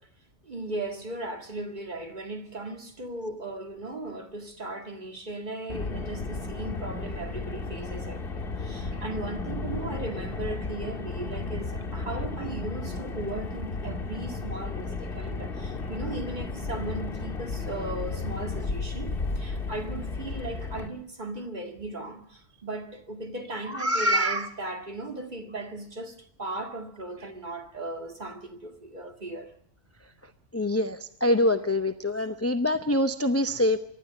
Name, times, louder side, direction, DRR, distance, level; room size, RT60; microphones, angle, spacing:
voice 1, 0.4-29.5 33.4-33.6, right 2 dB, 40° right, 2.1 m, -37 dB
Car, 5.7-20.9, left 3 dB, 50° left, 2.0 m, -34 dB
voice 2, 23.8-24.5 30.5-33.8, left 1 dB, 15° left, 0.7 m, -25 dB
24.5 x 12.0 x 9.4 m
omnidirectional pair, 1.3 m